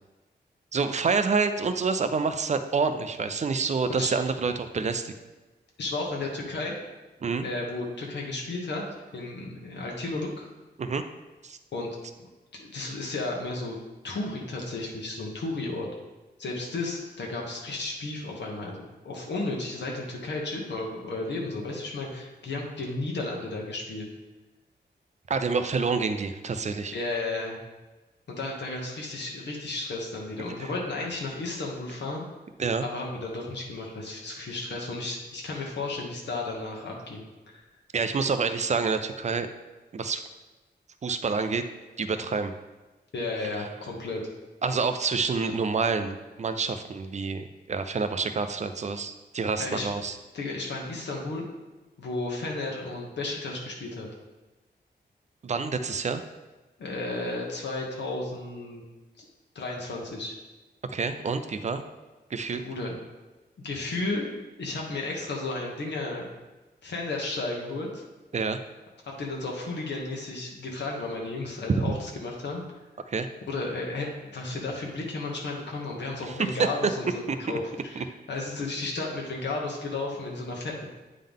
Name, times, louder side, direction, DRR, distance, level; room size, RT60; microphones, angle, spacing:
voice 1, 0.7-5.1 7.2-7.4 10.8-11.0 11.4-11.6 25.3-26.9 30.6-30.7 32.6-32.9 37.9-39.5 39.9-40.2 41.0-41.6 42.0-42.5 44.6-50.2 55.4-56.2 60.9-61.8 62.3-62.6 68.3-68.6 71.7-71.9 73.1-73.3 76.3-76.7 78.0-78.1, right 4 dB, 40° right, 9 dB, 0.4 m, -27 dB
voice 2, 5.8-6.8 7.4-8.8 9.1-10.5 11.7-11.9 12.2-13.8 14.0-15.9 16.4-24.1 26.9-27.6 28.3-32.3 32.8-37.6 43.1-44.2 49.6-49.9 50.3-51.4 52.0-54.1 56.8-58.8 59.2-59.3 59.5-60.3 62.6-62.9 63.6-64.3 64.6-66.3 66.8-68.0 69.0-72.6 73.5-80.9, left 2 dB, 80° left, -1 dB, 1.1 m, -33 dB
8.7 x 3.7 x 3.6 m, 1.2 s
wide cardioid pair, 160°, 18 cm